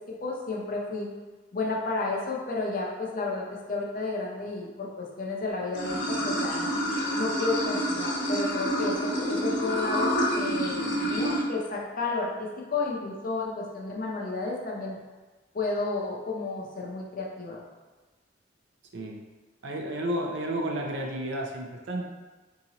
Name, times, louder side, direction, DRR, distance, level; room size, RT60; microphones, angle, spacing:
voice 1, 0.1-1.1 1.5-6.7 7.2-15.0 15.5-17.6, left 3 dB, 45° left, -1 dB, 0.6 m, -32 dB
Water / Sink (filling or washing), 5.7-11.4, equal, 80° left, 1.0 m, -28 dB
voice 2, 19.6-22.0, right 1 dB, 70° right, 1 dB, 0.5 m, -31 dB
3.8 x 2.9 x 2.8 m, 1.3 s
head